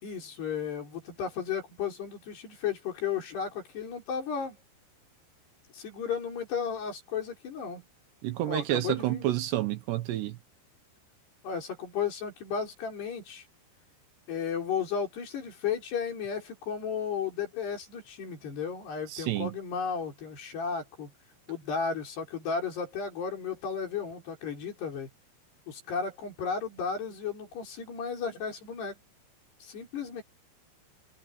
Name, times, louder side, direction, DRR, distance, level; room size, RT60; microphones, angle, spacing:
voice 1, 0.0-4.6 5.7-7.8 8.5-9.3 11.4-13.5 14.3-21.1 21.5-25.1 25.7-29.0 29.6-30.2, left 6 dB, 60° left, 7.0 m, -34 dB
voice 2, 8.2-10.4 19.1-19.5, right 14 dB, 75° right, 2.9 m, -29 dB
omnidirectional pair, 5.4 m